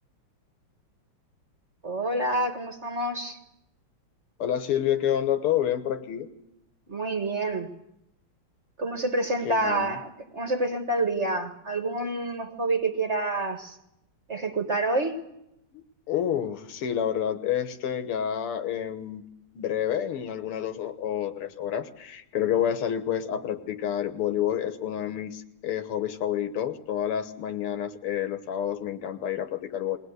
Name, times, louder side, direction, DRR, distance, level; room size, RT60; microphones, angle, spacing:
voice 1, 1.8-3.4 6.9-7.7 8.8-13.8 14.3-15.2, right 2 dB, 35° right, 5 dB, 1.5 m, -28 dB
voice 2, 4.4-6.3 9.5-9.9 15.7-19.2 19.6-30.0, left 10 dB, 85° left, 9 dB, 2.1 m, -29 dB
21.5 x 18.5 x 8.0 m, 0.83 s
omnidirectional pair, 2.4 m